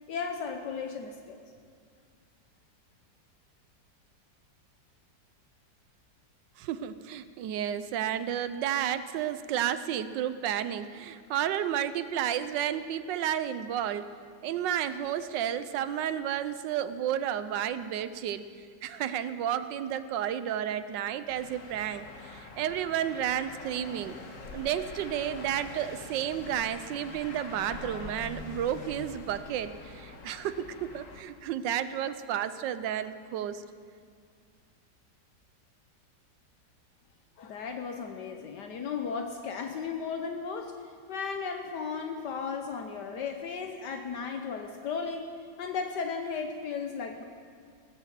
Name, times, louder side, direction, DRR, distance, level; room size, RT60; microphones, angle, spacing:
voice 1, 0.1-1.4 37.4-47.2, left 5 dB, 70° left, 5 dB, 1.4 m, -35 dB
voice 2, 6.6-14.1 14.4-18.4 18.8-24.2 24.5-33.6, right 10 dB, 80° right, 13 dB, 1.3 m, -32 dB
sound 1, 21.3-31.2, left 3 dB, 50° left, 1.4 m, -45 dB
19.0 x 7.9 x 7.5 m, 2.1 s
omnidirectional pair, 2.0 m